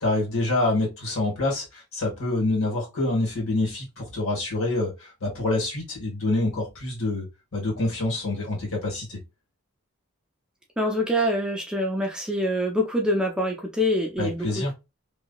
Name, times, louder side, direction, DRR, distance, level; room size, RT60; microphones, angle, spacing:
voice 1, 0.0-7.3 7.5-9.2 14.2-14.7, left 2 dB, 65° left, 1.7 m, -26 dB
voice 2, 10.8-14.7, equal, 5° right, 0.6 m, -25 dB
2.9 x 2.7 x 2.3 m
head